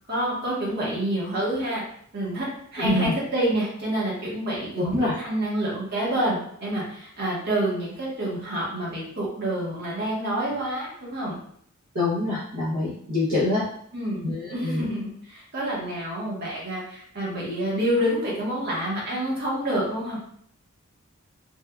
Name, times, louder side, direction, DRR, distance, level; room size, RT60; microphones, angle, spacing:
voice 1, 0.1-1.8 2.1-2.5 2.7-11.4 13.9-20.2, right 1 dB, 50° right, -5 dB, 1.1 m, -28 dB
voice 2, 2.8-3.1 4.8-5.1 11.9-13.6 14.2-14.9, left 2 dB, 70° right, -8 dB, 0.8 m, -25 dB
3.3 x 2.2 x 2.3 m, 0.64 s
head